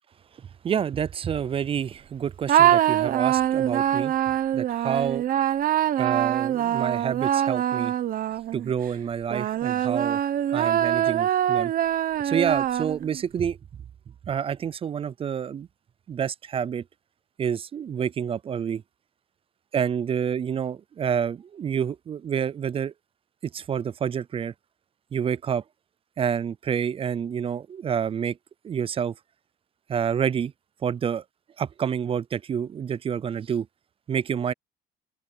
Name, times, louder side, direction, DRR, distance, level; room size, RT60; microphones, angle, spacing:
voice 1, 0.6-4.1 4.5-5.2 6.0-7.9 8.5-10.2 10.5-11.7 12.2-13.6 14.3-15.7 16.1-16.8 17.4-18.8 19.7-22.9 23.5-24.5 25.1-25.6 26.2-28.4 28.6-29.1 29.9-30.5 30.8-31.2 31.6-33.7 34.1-34.5, right 8 dB, 35° right, 0.4 m, -28 dB
sound 1, 2.5-8.7 9.3-13.2, right 11 dB, 55° right, 1.1 m, -24 dB
open air
cardioid pair, 110°, 17 cm